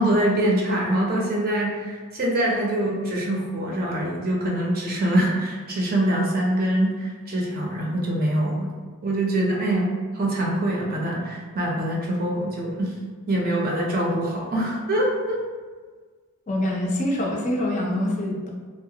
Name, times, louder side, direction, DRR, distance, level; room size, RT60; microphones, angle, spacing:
voice 1, 0.0-8.7 9.0-13.0 13.3-15.4, right 1 dB, 40° right, -2 dB, 0.5 m, -24 dB
voice 2, 16.5-18.5, left 1 dB, 35° left, -1 dB, 0.3 m, -25 dB
2.8 x 2.1 x 2.7 m, 1.5 s
head